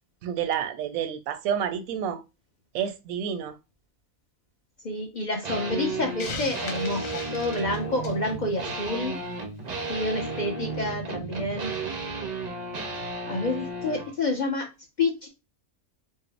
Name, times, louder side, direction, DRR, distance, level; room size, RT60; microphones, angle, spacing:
voice 1, 0.2-2.2 2.7-3.5, right 8 dB, 90° right, 1.0 m, -29 dB
voice 2, 4.8-9.2 9.9-11.7 13.3-14.7 15.0-15.3, left 2 dB, 50° left, 0.6 m, -28 dB
sound 1, 5.4-14.1, right 3 dB, 50° right, 0.5 m, -33 dB
Hiss, 6.2-8.3, left 5 dB, 80° left, 1.2 m, -38 dB
4.5 x 2.0 x 3.2 m
omnidirectional pair, 1.4 m